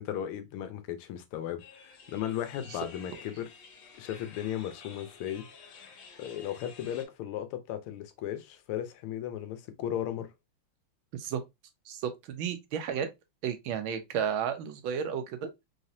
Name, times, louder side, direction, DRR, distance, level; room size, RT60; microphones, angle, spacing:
voice 1, 0.0-3.5 4.0-5.4 6.2-10.3, left 11 dB, 85° left, 1.6 m, -36 dB
sound 1, 1.6-7.0, left 5 dB, 65° left, 1.6 m, -51 dB
voice 2, 11.9-13.1 13.4-15.5, right 8 dB, 75° right, 1.4 m, -32 dB
4.1 x 3.3 x 2.7 m
omnidirectional pair, 2.3 m